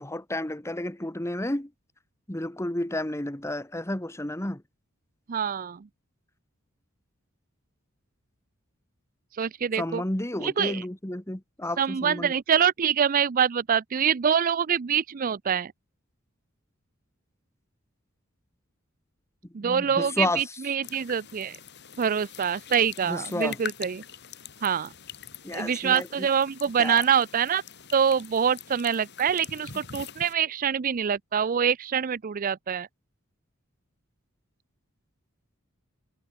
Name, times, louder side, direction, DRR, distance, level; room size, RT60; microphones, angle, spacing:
voice 1, 0.0-1.7 2.3-4.6 9.7-12.3 19.6-20.5 23.0-23.6 25.4-26.3 26.8-27.0, left 1 dB, 15° left, 1.4 m, -31 dB
voice 2, 5.3-5.8 9.4-10.0 10.4-10.8 11.8-15.7 19.5-21.6 22.0-24.0 24.6-24.9 25.5-27.6 27.9-32.9, right 7 dB, 40° right, 0.4 m, -25 dB
sound 1, 20.8-30.3, left 8 dB, 55° left, 5.1 m, -44 dB
head